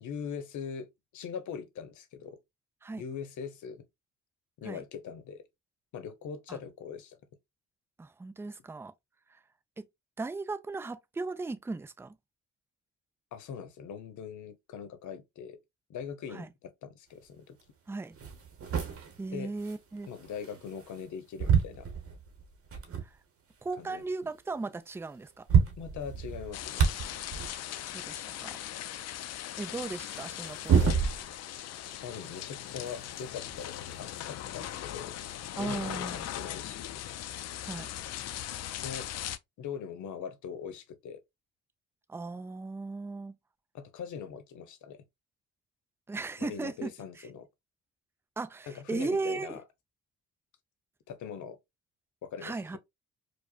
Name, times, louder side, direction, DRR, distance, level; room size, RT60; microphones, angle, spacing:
voice 1, 0.0-2.4 2.9-3.8 4.6-5.5 5.9-7.2 13.3-15.6 15.9-17.6 19.3-19.5 20.1-21.9 23.8-24.0 25.8-26.9 32.0-35.1 35.5-37.0 38.8-39.1 39.6-41.2 43.7-45.0 46.4-47.5 48.7-49.6 51.1-51.6 52.2-52.8, left 7 dB, 75° left, 0.8 m, -41 dB
voice 2, 8.0-8.9 9.3-9.4 9.8-9.9 10.2-12.2 16.3-16.5 17.9-18.2 19.2-20.1 23.0-23.2 23.6-25.5 27.5-28.6 29.6-30.9 35.6-36.3 37.6-37.9 42.1-43.3 46.1-46.9 47.2-47.3 48.4-49.6 52.4-52.8, right 3 dB, 10° right, 0.4 m, -37 dB
sound 1, 17.6-17.7 18.1-21.1 21.4-23.1 23.7-23.8 24.0-24.1 24.9-25.0 25.2-27.6 30.1-31.6 31.9-34.2 35.2-35.3 36.3-36.4, right 7 dB, 50° right, 1.0 m, -30 dB
sound 2, 26.5-39.4, left 12 dB, 60° left, 0.4 m, -39 dB
4.7 x 2.2 x 2.2 m
cardioid pair, 90°, 30 cm